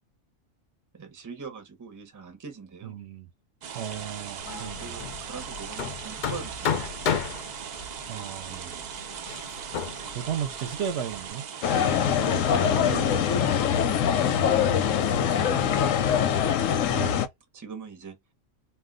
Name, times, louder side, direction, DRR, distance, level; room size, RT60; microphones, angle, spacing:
voice 1, 0.9-3.0 4.4-7.2 8.5-8.9 11.8-13.2 14.1-16.1 17.5-18.2, right 5 dB, 20° right, 0.5 m, -41 dB
voice 2, 2.8-3.3 3.7-5.0 8.1-8.8 9.2-9.4 10.1-11.5 12.8-13.2 13.8-14.2 16.9-17.3, right 8 dB, 65° right, 0.7 m, -35 dB
sound 1, 3.6-16.2, right 7 dB, 90° right, 0.3 m, -40 dB
Hammer, 4.4-11.3, left 7 dB, 60° left, 0.5 m, -34 dB
sound 2, 11.6-17.3, left 8 dB, 90° left, 1.0 m, -23 dB
2.3 x 2.2 x 3.5 m
omnidirectional pair, 1.3 m